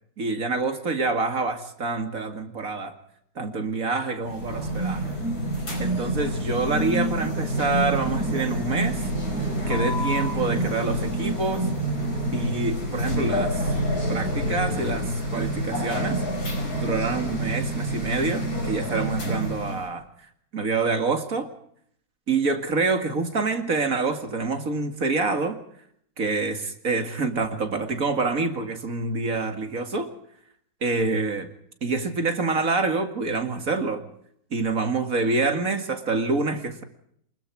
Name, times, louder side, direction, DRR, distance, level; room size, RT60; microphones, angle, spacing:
voice 1, 0.2-2.9 3.4-5.1 5.8-9.1 9.7-11.7 12.3-13.7 14.1-16.2 16.7-20.0 20.5-21.5 22.3-25.6 26.2-30.1 30.8-31.5 31.8-34.0 34.5-36.8, right 3 dB, 60° right, 7 dB, 2.6 m, -26 dB
sound 1, 4.2-19.9, right 1 dB, 75° left, 5.7 m, -27 dB
28.5 x 21.0 x 4.8 m, 0.68 s
omnidirectional pair, 1.7 m